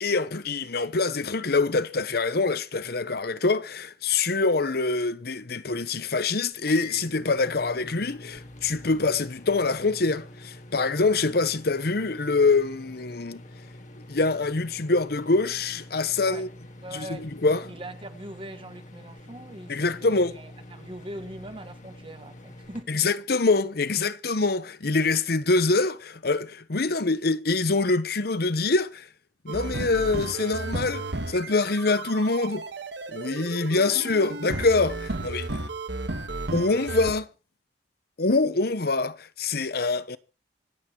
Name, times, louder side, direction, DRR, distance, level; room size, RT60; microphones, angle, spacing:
voice 1, 0.0-13.4 14.1-16.5 16.9-17.6 19.7-20.3 22.9-29.1 29.4-32.7 33.1-35.5 36.5-37.3 38.2-40.2, left 3 dB, 60° left, 0.9 m, -25 dB
sound 1, 6.6-22.8, left 1 dB, 45° left, 1.8 m, -46 dB
voice 2, 16.8-23.1, right 1 dB, 30° right, 1.5 m, -42 dB
sound 2, 29.5-37.1, right 2 dB, 80° right, 1.6 m, -33 dB
25.5 x 8.6 x 4.5 m
head